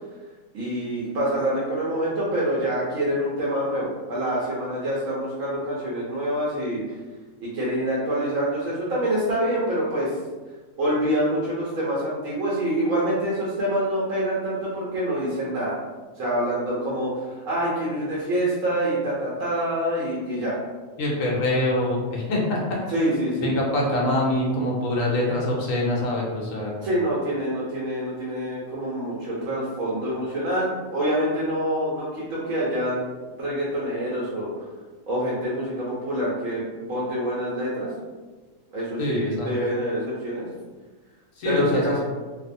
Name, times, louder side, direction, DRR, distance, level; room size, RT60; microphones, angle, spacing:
voice 1, 0.5-6.8 7.4-10.2 10.8-15.8 16.2-20.6 22.9-23.5 26.8-34.6 35.1-37.9 38.7-40.5 41.4-42.0, right 1 dB, 85° right, -7 dB, 1.1 m, -26 dB
voice 2, 21.0-26.7 39.0-39.5 41.4-42.0, left 1 dB, 80° left, -3 dB, 1.1 m, -25 dB
2.8 x 2.0 x 2.5 m, 1.3 s
omnidirectional pair, 1.4 m